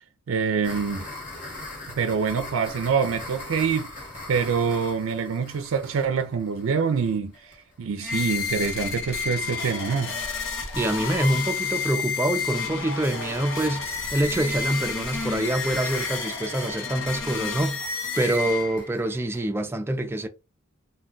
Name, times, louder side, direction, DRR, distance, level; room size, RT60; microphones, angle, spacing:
voice 1, 0.3-1.1 2.0-3.9 4.3-7.3 7.8-10.2, right 6 dB, 80° right, 0.4 m, -25 dB
sound 1, 0.6-8.3 8.6-8.7 9.0-9.1 9.4-9.5 9.8-10.0 10.3-19.4, left 2 dB, 40° left, 1.1 m, -42 dB
sound 2, 8.0-19.0, left 5 dB, 65° left, 0.8 m, -30 dB
voice 2, 10.8-17.8 18.1-20.3, right 1 dB, 10° right, 0.3 m, -26 dB
2.3 x 2.2 x 3.7 m
head